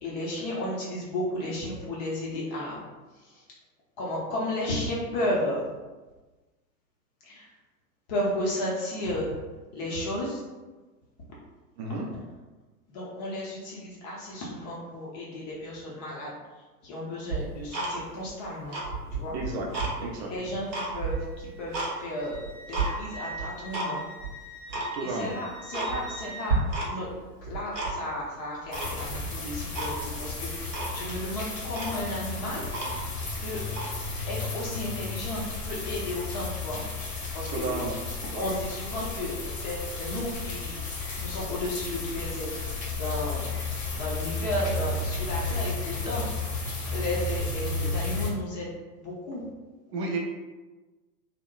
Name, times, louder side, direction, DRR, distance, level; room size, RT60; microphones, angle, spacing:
voice 1, 0.0-2.8 3.1-3.5 4.0-5.6 7.2-7.5 8.1-9.4 9.7-10.4 12.9-16.4 16.8-18.8 19.1-19.4 20.2-22.4 22.7-24.0 25.0-32.6 33.4-33.6 34.3-37.0 37.3-37.7 38.4-43.5 43.9-46.3 46.9-49.5, left 1 dB, 30° left, -4 dB, 0.4 m, -33 dB
Tick-tock, 17.3-18.3 18.6-19.9 20.4-21.9 22.3-22.9 23.4-23.9 24.2-24.3 24.7-24.9 25.3-25.4 25.7-26.2 26.5-27.1 27.4-28.2 28.7-29.3 29.7-29.9 30.3-30.4 30.7-31.0 31.4-31.5 31.7-33.2 33.7-33.9, right 3 dB, 85° right, 0.8 m, -31 dB
voice 2, 19.3-19.7 20.0-20.3 24.9-25.3 37.5-38.0 38.3-38.5 49.9-50.2, right 3 dB, 45° right, 0 dB, 0.5 m, -32 dB
Wind instrument woodwind instrument, 20.8-26.6, right 1 dB, ahead, 0.7 m, -44 dB
sound 1, 28.7-48.3, left 3 dB, 90° left, 0.9 m, -33 dB
2.8 x 2.0 x 2.2 m, 1.2 s
hypercardioid pair, 100°, 49 cm